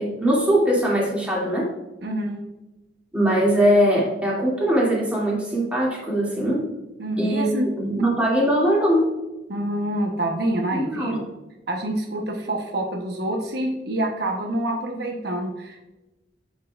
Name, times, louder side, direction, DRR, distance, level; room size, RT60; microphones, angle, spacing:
voice 1, 0.0-1.7 3.1-6.6 7.2-7.5 7.8-9.0 10.7-11.2, equal, 10° right, -6 dB, 2.3 m, -21 dB
voice 2, 2.0-2.4 7.0-7.7 9.5-11.2 11.7-15.8, right 1 dB, 65° right, 1 dB, 0.9 m, -27 dB
8.6 x 5.5 x 2.4 m, 1.0 s
head